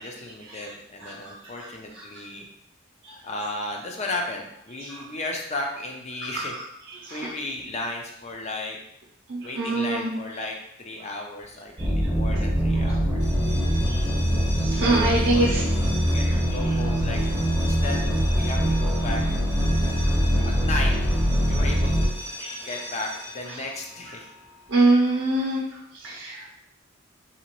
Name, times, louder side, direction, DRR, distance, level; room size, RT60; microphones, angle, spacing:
voice 1, 0.0-2.5 3.1-6.6 7.1-8.8 9.4-13.3 14.8-15.9 16.1-17.2 17.6-19.2 20.5-20.9 21.5-22.1 22.7-24.3 26.3-26.5, left 2 dB, 30° left, 1 dB, 0.5 m, -34 dB
voice 2, 1.0-1.3 7.0-7.3 9.3-10.1 13.8-14.0 14.6-15.6 16.2-16.3 20.0-20.1 22.4-22.5 24.7-25.6 25.9-26.6, right 2 dB, 55° right, -5 dB, 0.6 m, -24 dB
sound 1, 11.8-22.1, equal, 5° right, 0.7 m, -23 dB
sound 2, 13.1-24.8, left 1 dB, 85° left, 0.9 m, -40 dB
3.0 x 2.8 x 2.9 m, 0.77 s
head